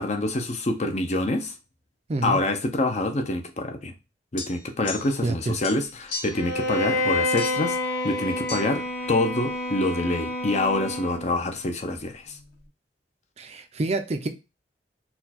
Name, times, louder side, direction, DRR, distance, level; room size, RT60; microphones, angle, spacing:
voice 1, 0.0-1.5 2.2-3.9 4.3-7.8 8.0-12.4, left 2 dB, 40° left, 0.6 m, -26 dB
sound 1, 4.4-5.3 5.6-6.5 7.4-7.7 8.5-8.6, left 4 dB, 85° left, 1.1 m, -36 dB
voice 2, 5.2-5.6 13.4-14.3, right 2 dB, 35° right, 0.5 m, -27 dB
Bowed string instrument, 6.3-11.4, left 1 dB, 55° left, 1.5 m, -28 dB
4.3 x 2.3 x 4.1 m
head